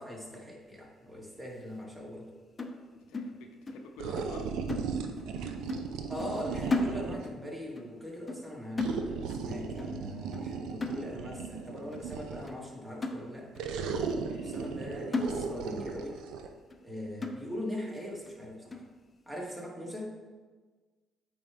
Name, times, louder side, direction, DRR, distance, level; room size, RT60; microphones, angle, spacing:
voice 1, 0.0-2.3 6.1-13.5 14.4-16.2 16.8-18.8 19.2-20.1, left 1 dB, 20° right, -1 dB, 1.7 m, -40 dB
sound 1, 2.6-3.9 4.2-4.4 4.7-5.4 5.7-5.9 6.2-7.5 7.8-8.0 8.3-8.5 8.8-9.5 9.8-10.0 10.3-10.5 10.8-11.4 11.9-12.0 12.5-12.6 13.0-13.7 14.1-14.2 14.6-14.8 15.1-15.9 16.2-16.3 16.7-16.8 17.2-17.8 18.3-18.4 18.7-18.9, left 2 dB, 30° left, 0.7 m, -36 dB
voice 2, 2.9-4.5 14.2-14.5 19.8-20.0, left 4 dB, 75° left, 4 dB, 0.7 m, -51 dB
sound 2, 4.0-7.4 8.8-12.6 13.6-16.5, right 5 dB, 75° right, 0.5 m, -36 dB
8.5 x 3.7 x 3.5 m, 1.4 s
hypercardioid pair, 60°, 0 cm